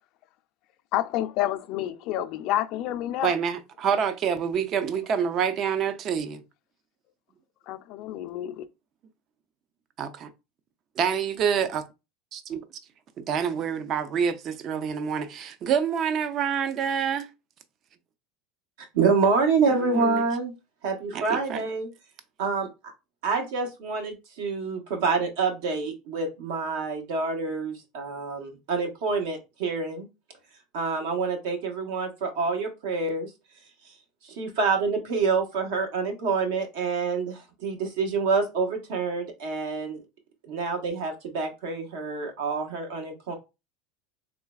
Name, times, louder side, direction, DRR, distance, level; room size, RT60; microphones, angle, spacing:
voice 1, 0.9-3.3 7.7-8.7, left 13 dB, 60° left, 0.4 m, -29 dB
voice 2, 3.2-6.4 10.0-10.3 11.0-11.8 12.3-12.6 13.2-17.3 19.7-20.2 21.1-21.6, right 7 dB, 45° right, 0.5 m, -27 dB
voice 3, 18.9-20.5 20.8-21.9 22.4-22.7 23.2-30.1 30.7-33.3 33.9-34.0 34.2-40.0 40.5-43.3, right 4 dB, 75° right, 1.2 m, -27 dB
3.7 x 3.2 x 2.3 m
supercardioid pair, 110°, 0 cm